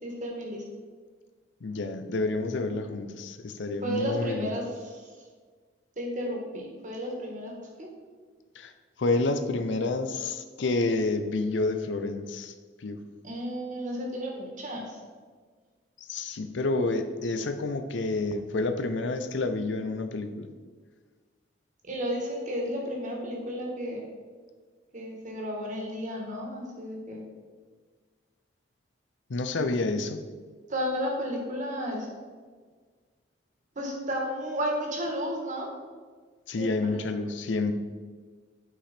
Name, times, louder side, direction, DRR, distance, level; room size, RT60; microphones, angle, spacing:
voice 1, 0.0-0.6 3.8-5.0 6.0-7.9 13.2-15.0 21.9-24.0 24.9-27.2 30.7-32.1 33.7-35.7 36.6-37.1, equal, 45° right, 0 dB, 1.6 m, -33 dB
voice 2, 1.6-4.5 8.6-8.7 9.0-12.5 12.8-13.0 16.1-20.5 29.3-30.2 36.5-37.7, left 3 dB, 80° left, 8 dB, 0.6 m, -29 dB
8.6 x 5.1 x 4.3 m, 1.5 s
head